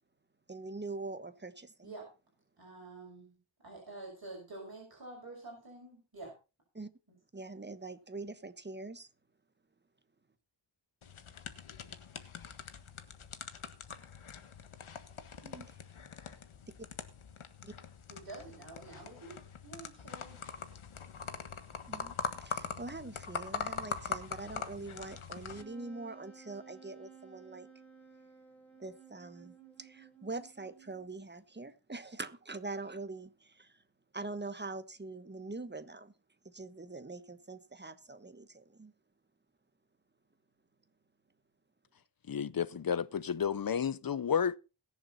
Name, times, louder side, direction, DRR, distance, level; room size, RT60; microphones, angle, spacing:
voice 1, 0.5-1.9 6.7-6.9 7.3-9.1 15.4-15.7 16.8-16.9 17.6-17.7 21.9-22.1 22.4-27.7 28.8-33.7 34.1-36.1 36.4-38.9, right 3 dB, 20° right, 1.3 m, -44 dB
voice 2, 2.6-3.4 3.6-6.3 18.1-19.4 19.6-20.4, right 2 dB, 50° right, 6.2 m, -48 dB
sound 1, 11.0-25.6, left 6 dB, 85° left, 1.6 m, -43 dB
Wind instrument woodwind instrument, 25.5-31.2, right 6 dB, 5° left, 6.2 m, -56 dB
voice 3, 42.3-44.6, left 7 dB, 45° left, 0.8 m, -31 dB
21.5 x 7.3 x 4.2 m
wide cardioid pair, 105°, 48 cm